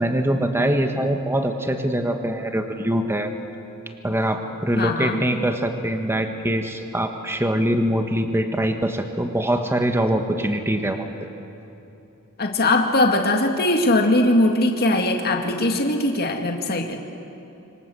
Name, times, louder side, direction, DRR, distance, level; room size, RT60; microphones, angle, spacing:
voice 1, 0.0-3.3 4.0-11.0, right 1 dB, 10° right, 5 dB, 1.4 m, -23 dB
voice 2, 4.8-5.2 12.4-17.0, left 1 dB, 45° left, 2 dB, 2.1 m, -20 dB
27.0 x 25.0 x 7.8 m, 2.9 s
head